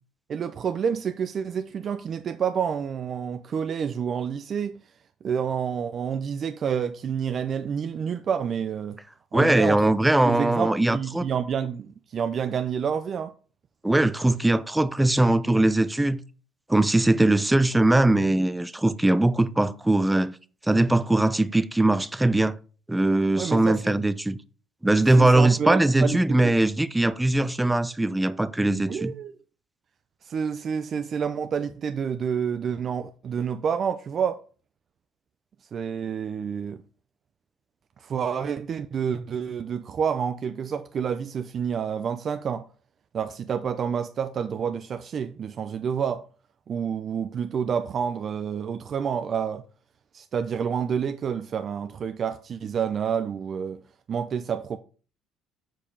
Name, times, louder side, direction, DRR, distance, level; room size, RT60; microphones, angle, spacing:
voice 1, 0.3-4.8 5.2-9.0 9.3-9.9 10.2-13.3 23.3-23.9 25.2-26.5 28.9-29.3 30.2-34.4 35.7-36.8 38.0-42.7 43.1-46.2 46.7-49.6 50.1-53.8 54.1-54.8, right 7 dB, 50° right, 0.6 m, -28 dB
voice 2, 9.3-11.3 13.8-16.2 16.7-20.3 20.7-22.6 22.9-24.4 24.8-29.1, right 2 dB, 10° right, 0.7 m, -21 dB
7.5 x 4.9 x 5.3 m
supercardioid pair, 85°, 0 cm